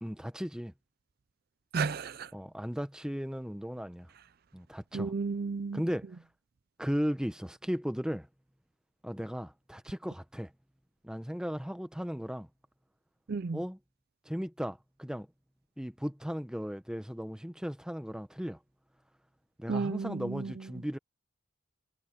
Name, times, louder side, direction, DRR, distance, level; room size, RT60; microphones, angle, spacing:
voice 1, 0.0-0.7 2.3-4.1 4.5-5.1 5.7-6.1 6.8-8.3 9.0-10.5 11.0-12.5 13.5-13.8 14.3-15.3 15.8-18.6 19.6-21.0, equal, 5° right, 0.9 m, -36 dB
voice 2, 1.7-2.3 4.9-5.8 13.3-13.6 19.7-20.7, right 4 dB, 50° right, 0.4 m, -33 dB
head